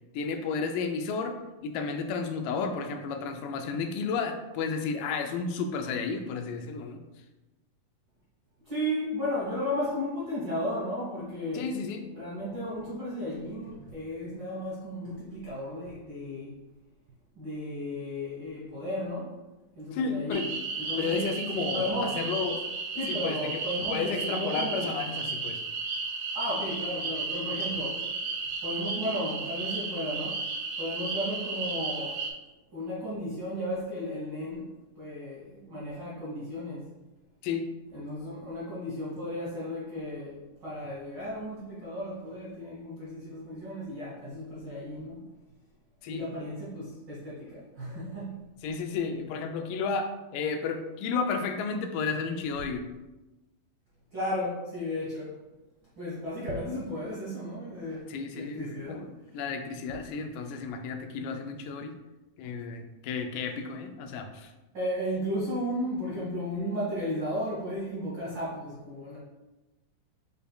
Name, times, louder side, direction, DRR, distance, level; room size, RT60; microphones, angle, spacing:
voice 1, 0.1-1.3 1.6-7.0 11.5-12.0 19.9-20.5 21.0-22.6 23.1-23.5 23.9-25.6 37.4-37.7 46.0-46.2 48.6-52.8 58.1-59.1 59.3-61.9 62.4-64.5, left 5 dB, 85° left, 5 dB, 2.2 m, -32 dB
voice 2, 8.6-11.7 12.1-16.5 17.3-19.3 19.7-20.5 20.7-22.2 22.9-25.0 26.3-28.0 28.6-32.2 32.7-34.7 35.0-36.9 37.9-45.2 46.1-48.4 52.6-52.7 54.1-55.4 56.0-58.1 58.3-59.0 60.4-60.5 61.2-61.4 64.7-69.2, equal, 60° right, -8 dB, 1.2 m, -34 dB
sound 1, 20.3-32.3, right 4 dB, 75° right, 1.6 m, -34 dB
6.7 x 3.5 x 2.3 m, 1.1 s
omnidirectional pair, 3.7 m